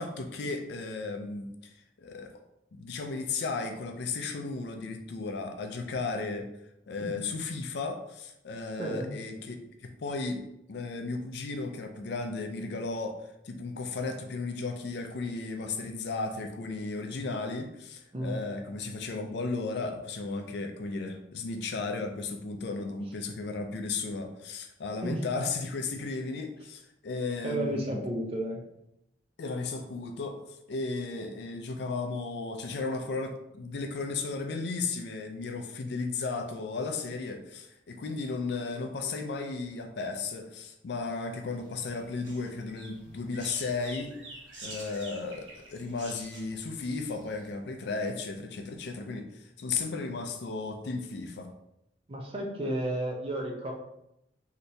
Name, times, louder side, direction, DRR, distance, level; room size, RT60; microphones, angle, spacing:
voice 1, 0.0-2.4 2.7-6.5 6.9-9.6 9.8-10.4 10.7-28.0 29.4-44.1 44.6-51.5, left 3 dB, 65° left, 5 dB, 0.4 m, -35 dB
voice 2, 8.8-9.1 18.1-18.4 25.0-25.3 27.4-28.6 52.1-53.7, right 1 dB, 30° right, 0 dB, 0.5 m, -32 dB
sound 1, 41.5-47.5, right 2 dB, 90° right, 1.1 m, -47 dB
3.3 x 2.8 x 2.6 m, 0.83 s
head